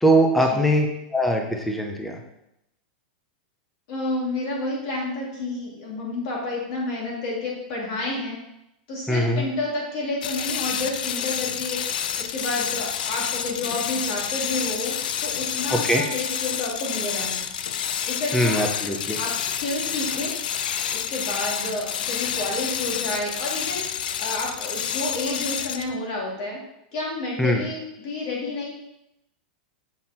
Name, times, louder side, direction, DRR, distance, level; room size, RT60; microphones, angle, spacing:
voice 1, 0.0-0.9 1.1-2.2 9.1-9.4 15.7-16.0 18.3-19.2 27.4-27.6, equal, 5° left, 2 dB, 0.6 m, -21 dB
voice 2, 3.9-8.4 8.9-11.8 12.2-17.4 18.1-18.7 19.1-20.3 20.9-23.8 24.2-26.6 26.9-28.7, left 2 dB, 45° left, -3 dB, 2.9 m, -30 dB
sound 1, 10.2-26.0, left 9 dB, 65° left, 0.5 m, -29 dB
7.6 x 5.8 x 4.3 m, 0.83 s
supercardioid pair, 180°, 5 cm